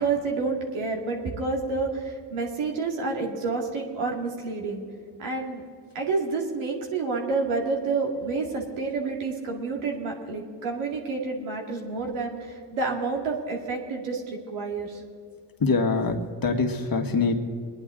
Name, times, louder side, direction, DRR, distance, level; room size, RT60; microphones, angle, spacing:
voice 1, 0.0-4.8 5.2-5.6 5.9-15.0, right 4 dB, 75° right, 0 dB, 2.4 m, -29 dB
voice 2, 15.6-17.4, left 4 dB, 45° left, 5 dB, 1.7 m, -24 dB
22.5 x 10.5 x 3.8 m, 2.2 s
hypercardioid pair, 45°, 50 cm